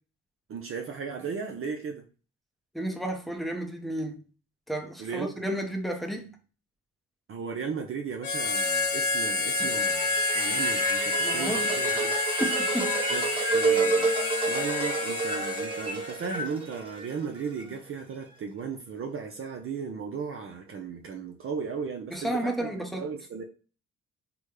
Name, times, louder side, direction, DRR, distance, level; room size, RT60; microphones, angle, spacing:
voice 1, 0.5-2.0 5.0-5.4 7.3-12.2 13.1-14.1 14.5-22.7 23.0-23.4, right 6 dB, 45° right, 0.6 m, -36 dB
voice 2, 2.7-4.2 4.7-6.3 9.6-9.7 11.2-11.9 12.4-13.0 22.1-23.1, right 1 dB, ahead, 0.7 m, -32 dB
Harmonica, 8.2-16.3, left 3 dB, 90° left, 0.7 m, -29 dB
sound 1, 9.5-17.6, right 3 dB, 15° right, 1.0 m, -30 dB
3.4 x 2.2 x 3.1 m
cardioid pair, 90°, 30 cm